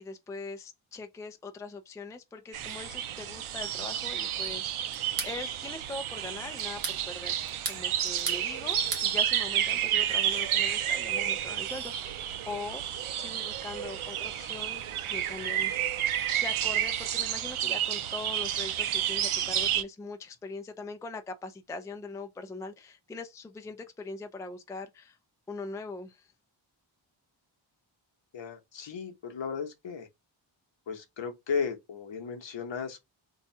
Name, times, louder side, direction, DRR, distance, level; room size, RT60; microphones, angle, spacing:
voice 1, 0.0-12.2 12.5-12.8 13.2-25.2 25.5-26.3, left 3 dB, 5° left, 0.4 m, -42 dB
sound 1, 2.5-19.8, right 10 dB, 80° right, 0.6 m, -31 dB
sound 2, 4.9-5.4 6.6-7.0 7.5-8.4 8.7-9.1, right 4 dB, 45° right, 0.9 m, -35 dB
voice 2, 28.3-30.1 30.9-33.1, left 6 dB, 65° left, 0.9 m, -35 dB
2.7 x 2.3 x 4.1 m
wide cardioid pair, 95°, 49 cm